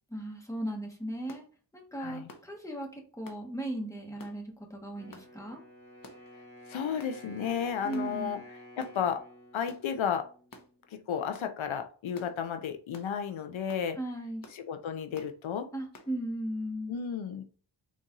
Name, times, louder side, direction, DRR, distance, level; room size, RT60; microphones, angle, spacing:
voice 1, 0.1-1.4 1.7-5.6 7.8-8.4 14.0-14.4 15.7-16.9, right 1 dB, 5° left, 1.2 m, -37 dB
sound 1, 1.3-1.5 2.3-2.5 3.3-3.4 4.2-4.4 5.1-5.3 6.0-6.3 7.0-7.2 7.9-8.1 8.8-9.0 9.7-9.9 10.5-10.7 11.3-11.5 12.1-12.4 12.9-13.1 13.7-13.9 14.4-14.6 15.1-15.3 15.9-16.1, left 2 dB, 45° left, 0.9 m, -51 dB
voice 2, 2.0-2.3 6.7-8.4 8.8-9.2 9.5-10.3 11.1-14.0 14.5-15.7 16.9-17.4, left 7 dB, 85° left, 0.6 m, -33 dB
Wind instrument woodwind instrument, 4.9-10.9, equal, 25° right, 1.9 m, -51 dB
4.1 x 2.5 x 3.7 m
wide cardioid pair, 60°, 47 cm